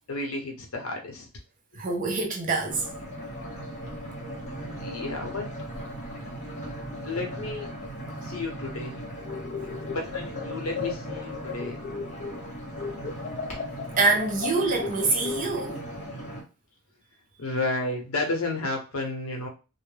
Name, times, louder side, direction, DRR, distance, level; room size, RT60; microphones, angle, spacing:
voice 1, 0.1-1.3 4.8-5.5 7.0-7.7 8.2-9.0 9.9-11.8 17.4-19.5, left 2 dB, 75° left, 0.8 m, -32 dB
voice 2, 1.7-2.9 9.6-9.7 14.0-15.8, right 3 dB, 35° right, 0.5 m, -25 dB
sound 1, 2.7-16.4, right 1 dB, 30° left, 0.7 m, -38 dB
sound 2, 9.2-12.5 12.8-15.8, left 5 dB, 50° left, 0.4 m, -36 dB
2.2 x 2.1 x 3.1 m
head